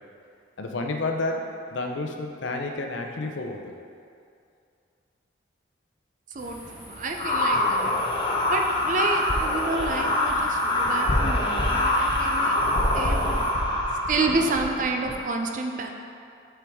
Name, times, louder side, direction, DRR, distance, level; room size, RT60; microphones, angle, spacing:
voice 1, 0.6-3.8, left 2 dB, 75° left, 3 dB, 0.6 m, -30 dB
voice 2, 6.3-8.0 8.5-12.6 12.8-13.4 14.1-15.9, right 3 dB, 40° right, 3 dB, 0.4 m, -29 dB
sound 1, 6.4-13.5, equal, 10° right, 1.2 m, -43 dB
sound 2, 7.2-15.2, left 1 dB, 25° left, 0.5 m, -24 dB
6.9 x 4.6 x 3.5 m, 2.4 s
head